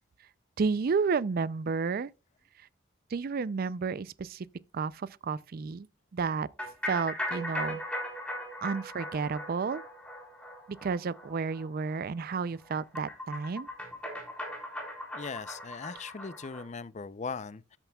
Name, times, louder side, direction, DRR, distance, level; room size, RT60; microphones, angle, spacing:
voice 1, 0.6-2.1 3.1-4.5 4.7-5.9 6.1-6.5 6.9-7.8 8.6-9.8 10.7-13.7, right 5 dB, 50° right, 0.4 m, -31 dB
sound 1, 6.6-16.6, left 1 dB, 5° left, 3.7 m, -39 dB
voice 2, 15.1-17.8, left 5 dB, 35° left, 0.5 m, -39 dB
13.0 x 9.0 x 2.3 m
head